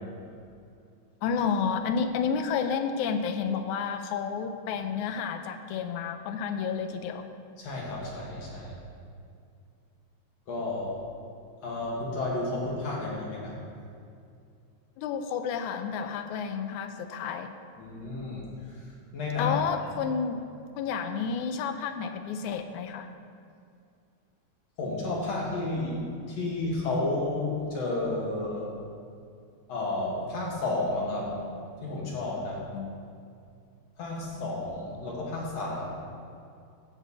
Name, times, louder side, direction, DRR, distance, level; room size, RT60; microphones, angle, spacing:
voice 1, 1.2-7.3 15.0-17.5 19.4-20.4 20.8-23.1 32.7-32.9, left 6 dB, 85° left, 7 dB, 2.1 m, -30 dB
voice 2, 7.6-8.7 10.5-10.9 11.6-13.5 17.8-18.5 19.1-19.5 24.8-26.0 26.3-28.7 29.7-31.3 31.8-32.6 34.0-35.9, left 2 dB, 60° left, -4 dB, 3.0 m, -31 dB
14.5 x 6.9 x 4.2 m, 2.4 s
omnidirectional pair, 3.3 m